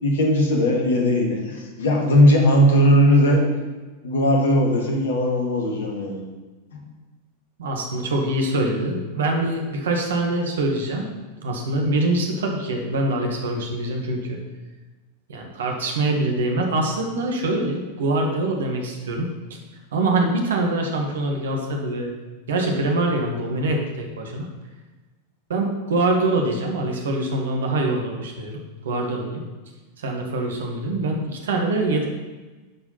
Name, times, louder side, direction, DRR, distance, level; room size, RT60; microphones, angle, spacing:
voice 1, 0.0-3.4 4.0-6.2 6.7-6.8, equal, 60° left, 1 dB, 2.0 m, -18 dB
voice 2, 7.6-11.1 11.4-14.4 15.3-19.3 19.9-22.1 22.5-24.5 25.5-29.4 30.0-32.1, right 2 dB, 60° right, 2 dB, 1.7 m, -24 dB
11.0 x 5.0 x 5.7 m, 1.2 s
figure-of-eight pair, 90°, 0 cm